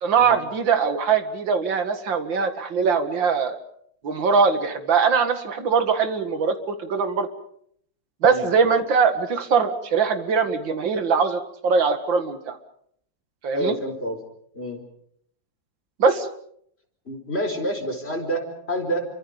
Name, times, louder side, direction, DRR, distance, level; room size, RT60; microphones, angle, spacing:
voice 1, 0.0-3.6 4.0-7.3 8.2-12.6 13.4-13.7 16.0-16.3, right 5 dB, 80° right, 8 dB, 2.7 m, -21 dB
voice 2, 13.5-14.2 14.5-14.8 17.1-19.1, right 1 dB, 30° left, 4 dB, 4.9 m, -28 dB
29.5 x 25.0 x 5.3 m, 0.67 s
omnidirectional pair, 2.0 m